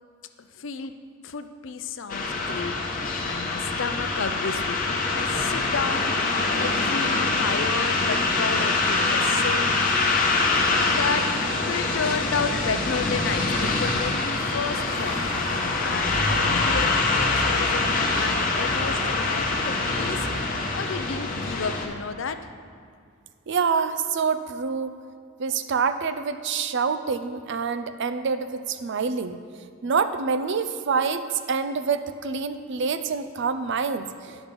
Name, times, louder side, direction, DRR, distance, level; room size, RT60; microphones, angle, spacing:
voice 1, 0.4-0.9 1.2-9.9 10.4-15.2 15.8-20.3 20.5-22.5, left 5 dB, 65° left, 9 dB, 0.5 m, -32 dB
sound 1, 2.1-21.9, left 3 dB, 40° left, 1.0 m, -24 dB
voice 2, 23.5-24.9 25.4-29.4 29.8-34.4, right 5 dB, 60° right, 10 dB, 0.5 m, -26 dB
10.5 x 6.0 x 5.2 m, 2.3 s
head